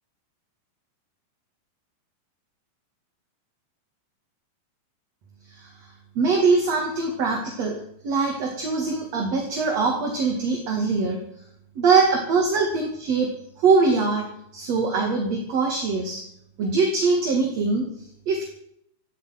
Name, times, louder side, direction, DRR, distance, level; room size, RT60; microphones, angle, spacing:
voice 1, 6.2-7.8 8.0-11.2 11.8-13.3 13.6-14.3 14.5-16.2 16.6-17.8 18.3-18.4, right 4 dB, 50° right, 1 dB, 3.2 m, -22 dB
18.0 x 13.0 x 6.0 m, 0.73 s
omnidirectional pair, 4.3 m